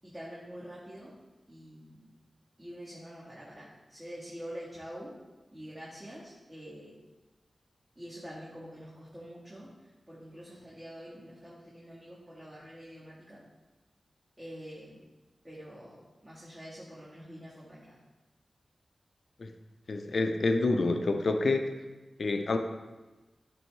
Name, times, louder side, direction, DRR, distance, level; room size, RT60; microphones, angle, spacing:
voice 1, 0.0-1.1 1.5-2.1 2.6-5.1 5.5-7.0 8.0-9.7 10.1-13.4 14.4-15.0 15.4-18.0, equal, 25° right, -8 dB, 1.8 m, -46 dB
voice 2, 19.9-21.6 22.2-22.6, left 3 dB, 65° left, 6 dB, 0.5 m, -27 dB
10.0 x 3.4 x 3.2 m, 1.2 s
cardioid pair, 45°, 0 cm